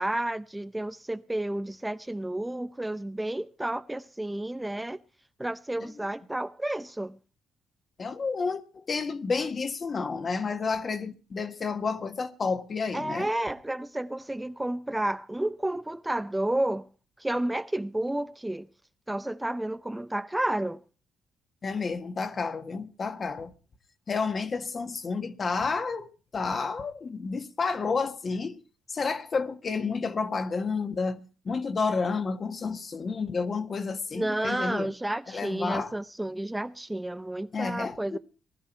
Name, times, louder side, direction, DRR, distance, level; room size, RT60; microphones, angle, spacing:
voice 1, 0.0-5.0 5.4-7.2 12.9-16.9 17.2-18.7 19.1-20.8 34.1-38.2, right 1 dB, 10° right, 0.7 m, -31 dB
voice 2, 8.0-13.3 21.6-23.5 24.1-26.1 26.3-28.6 28.9-34.9 35.3-35.9 37.5-38.2, left 4 dB, 40° left, 1.5 m, -30 dB
19.0 x 12.5 x 4.5 m
cardioid pair, 90°, 0 cm